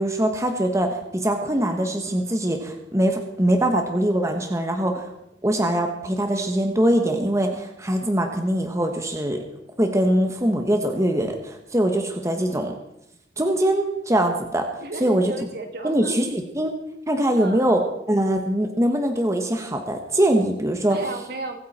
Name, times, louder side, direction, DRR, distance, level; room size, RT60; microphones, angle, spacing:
voice 1, 0.0-5.1 5.4-9.4 9.8-12.7 13.4-14.7 15.0-15.3 15.8-16.7 17.1-17.8 18.1-21.0, right 1 dB, 15° right, 4 dB, 1.3 m, -22 dB
voice 2, 14.8-16.2 17.4-17.8 20.9-21.6, right 2 dB, 60° right, 4 dB, 2.3 m, -33 dB
23.5 x 9.5 x 4.3 m, 0.82 s
head